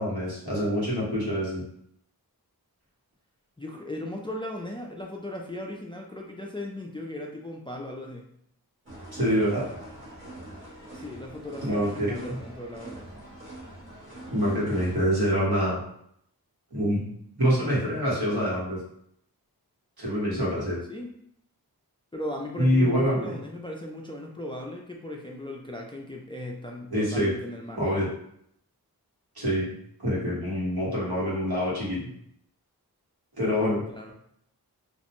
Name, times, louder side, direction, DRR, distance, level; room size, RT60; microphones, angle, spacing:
voice 1, 0.0-1.6 9.1-9.7 11.6-12.4 14.3-15.8 16.7-17.1 17.4-18.8 20.0-20.8 22.6-23.4 26.9-27.3 27.8-28.1 29.3-29.6 30.0-32.0 33.4-33.8, equal, 70° right, -7 dB, 1.3 m, -25 dB
voice 2, 3.6-8.2 10.9-13.1 20.9-21.1 22.1-27.9 33.9-34.1, left 1 dB, 15° left, 0 dB, 0.3 m, -37 dB
sound 1, 8.9-15.1, right 1 dB, 30° right, 1.2 m, -43 dB
2.5 x 2.0 x 3.0 m, 0.70 s
wide cardioid pair, 40°, 38 cm